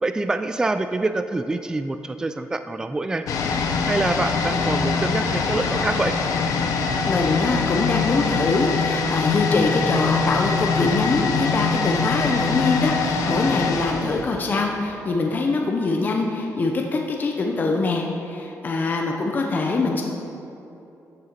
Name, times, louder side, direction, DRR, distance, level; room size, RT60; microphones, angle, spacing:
voice 1, 0.0-3.2 3.9-6.1, right 2 dB, 10° right, 9 dB, 0.3 m, -25 dB
sound 1, 3.3-15.0 15.3-15.4, left 5 dB, 90° left, 0.9 m, -23 dB
voice 2, 7.0-20.0, left 3 dB, 35° left, 1 dB, 0.7 m, -23 dB
14.0 x 6.5 x 4.4 m, 2.9 s
wide cardioid pair, 150°, 6 cm